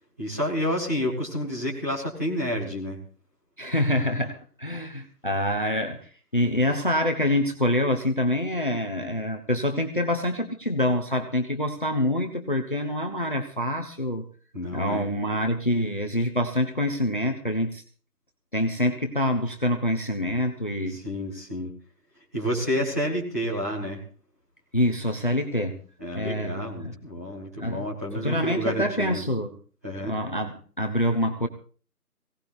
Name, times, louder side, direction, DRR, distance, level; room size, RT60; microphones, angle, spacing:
voice 1, 0.2-3.0 14.5-15.0 20.9-21.7 22.3-24.0 26.0-29.2 29.8-30.1, equal, 10° right, -7 dB, 2.1 m, -29 dB
voice 2, 3.6-14.3 14.7-17.8 18.5-21.0 24.7-25.8 26.1-26.9 27.6-27.8 28.2-29.5 30.1-31.5, left 1 dB, 35° left, 5 dB, 1.0 m, -26 dB
22.5 x 17.5 x 2.6 m, 0.39 s
figure-of-eight pair, 165°, 47 cm